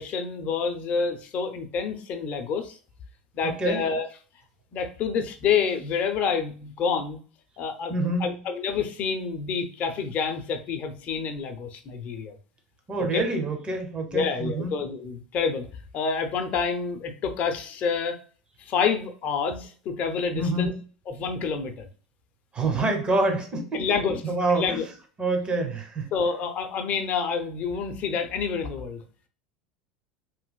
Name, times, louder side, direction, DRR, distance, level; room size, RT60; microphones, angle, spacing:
voice 1, 0.0-2.8 3.3-4.0 4.7-7.2 7.6-7.9 8.2-12.3 13.1-13.2 14.1-15.7 15.9-18.2 18.6-20.7 21.1-21.9 23.7-24.2 24.5-24.8 26.1-29.0, left 6 dB, 45° left, 6 dB, 0.6 m, -28 dB
voice 2, 3.4-3.8 7.9-8.4 12.9-14.7 20.3-20.8 22.5-23.9 24.2-24.8 25.2-26.1, right 2 dB, 25° right, 4 dB, 1.0 m, -26 dB
3.2 x 2.8 x 2.2 m, 0.40 s
hypercardioid pair, 80°, 4 cm